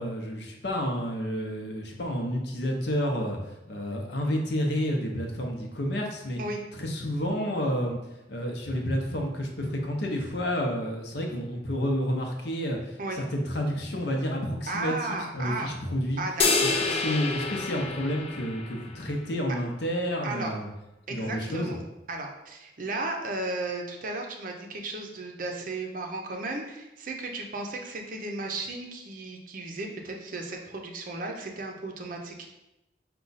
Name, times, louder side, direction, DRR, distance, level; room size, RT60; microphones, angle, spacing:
voice 1, 0.0-6.4 6.8-8.0 8.3-16.2 16.6-20.7 21.1-21.8, equal, 65° left, 1 dB, 0.7 m, -30 dB
voice 2, 14.7-15.7 16.2-17.0 20.2-20.5 21.1-21.8 22.1-32.5, right 2 dB, 45° right, 2 dB, 0.5 m, -35 dB
sound 1, 16.4-19.0, left 4 dB, 35° left, 0.4 m, -27 dB
4.9 x 2.3 x 4.0 m, 0.95 s
head